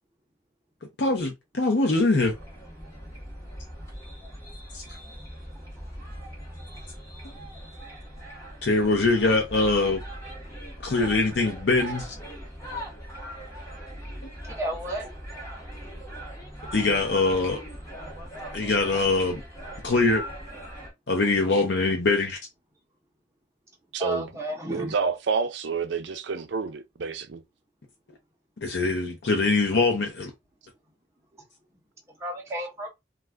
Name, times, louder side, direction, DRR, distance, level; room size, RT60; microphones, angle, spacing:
voice 1, 1.0-2.3 4.7-4.8 8.6-10.0 10.8-12.1 16.7-17.6 18.5-19.4 19.8-20.2 21.1-22.4 28.6-30.3, left 3 dB, 65° left, 0.7 m, -23 dB
sound 1, 2.2-20.9, equal, 15° left, 1.1 m, -40 dB
voice 2, 14.5-15.1 24.0-24.9 32.2-32.9, right 1 dB, 15° right, 0.8 m, -32 dB
voice 3, 23.9-24.3 24.7-27.4, right 5 dB, 75° right, 0.5 m, -29 dB
2.3 x 2.3 x 3.3 m
head